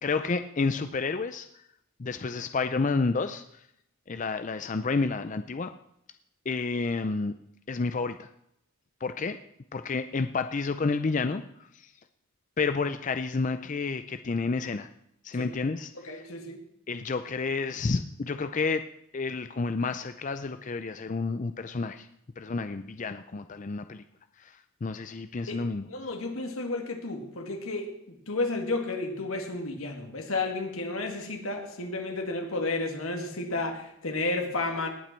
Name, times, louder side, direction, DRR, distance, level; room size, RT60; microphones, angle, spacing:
voice 1, 0.0-1.6 2.0-3.6 4.1-5.7 6.5-7.3 7.7-8.3 9.0-9.4 9.7-11.4 11.7-11.9 12.6-14.9 15.2-16.2 16.9-18.8 19.1-22.1 22.4-24.0 24.4-25.9, left 4 dB, 35° left, 10 dB, 0.5 m, -30 dB
voice 2, 16.0-16.6 25.5-25.6 25.9-34.9, left 2 dB, 80° left, 3 dB, 2.4 m, -32 dB
18.5 x 8.9 x 4.5 m, 0.78 s
head